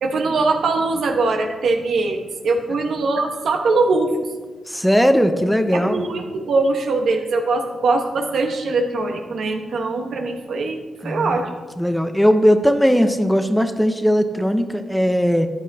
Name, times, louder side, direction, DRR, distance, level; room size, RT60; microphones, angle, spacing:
voice 1, 0.0-4.1 5.7-10.8 11.0-11.5, right 3 dB, 75° right, 3 dB, 1.2 m, -21 dB
voice 2, 4.7-6.0 11.0-11.5 11.8-15.5, equal, ahead, 8 dB, 0.7 m, -18 dB
13.5 x 9.3 x 2.8 m, 1.3 s
cardioid pair, 70°, 0 cm